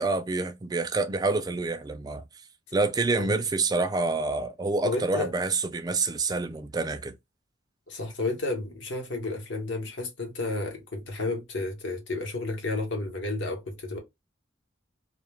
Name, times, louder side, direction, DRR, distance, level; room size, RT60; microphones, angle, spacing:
voice 1, 0.0-2.2 2.7-7.1, right 3 dB, 20° right, 0.3 m, -27 dB
voice 2, 4.8-5.3 7.9-14.0, left 2 dB, 65° left, 0.9 m, -31 dB
2.2 x 2.2 x 3.1 m
head